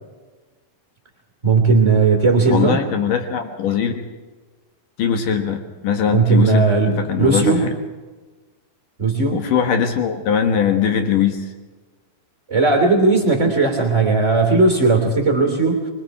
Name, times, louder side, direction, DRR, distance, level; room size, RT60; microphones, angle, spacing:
voice 1, 1.4-2.8 6.1-7.6 9.0-9.4 12.5-15.9, right 3 dB, 20° right, 3 dB, 2.6 m, -16 dB
voice 2, 2.5-4.0 5.0-7.7 9.3-11.5, left 7 dB, 65° left, 5 dB, 2.3 m, -21 dB
24.0 x 23.0 x 4.8 m, 1.3 s
omnidirectional pair, 5.3 m